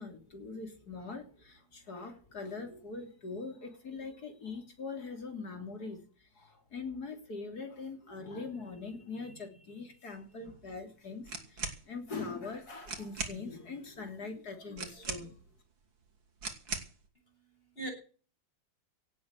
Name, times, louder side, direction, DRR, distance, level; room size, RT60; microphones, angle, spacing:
voice 1, 0.0-15.3, left 4 dB, 55° left, 6 dB, 3.8 m, -42 dB
sound 1, 11.2-11.8 12.5-12.6 12.8-13.4 14.8-15.5 16.4-17.0, right 4 dB, 90° right, 3.5 m, -39 dB
voice 2, 17.1-17.9, right 2 dB, 30° left, 2 dB, 8.3 m, -44 dB
17.5 x 8.0 x 8.4 m, 0.40 s
omnidirectional pair, 2.0 m